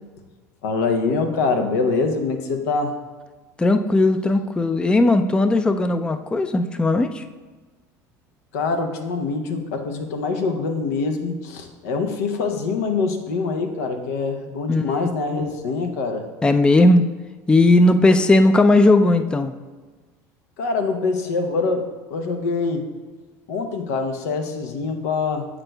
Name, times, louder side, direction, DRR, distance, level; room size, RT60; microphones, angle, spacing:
voice 1, 0.6-2.9 8.5-16.3 20.6-22.8 23.5-25.5, left 4 dB, 85° left, 5 dB, 0.7 m, -24 dB
voice 2, 3.6-7.2 14.7-15.1 15.4-15.5 16.4-17.0 17.5-19.5, left 2 dB, 10° left, 9 dB, 0.3 m, -17 dB
7.7 x 5.9 x 2.2 m, 1.3 s
supercardioid pair, 95°, 8 cm